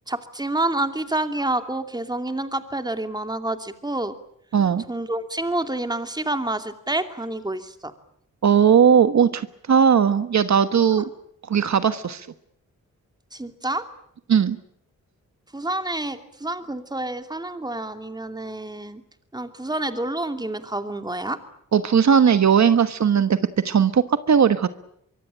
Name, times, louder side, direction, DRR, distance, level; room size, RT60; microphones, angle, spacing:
voice 1, 0.1-4.1 4.9-7.9 10.9-11.1 13.3-13.8 15.5-19.0 19.3-21.4, right 2 dB, 15° right, 8 dB, 2.7 m, -28 dB
voice 2, 4.5-4.8 8.4-11.1 11.5-12.3 14.3-14.6 21.7-23.4 23.6-24.7, right 7 dB, 65° right, 11 dB, 1.3 m, -18 dB
24.0 x 24.0 x 9.0 m, 0.72 s
wide cardioid pair, 95°, 31 cm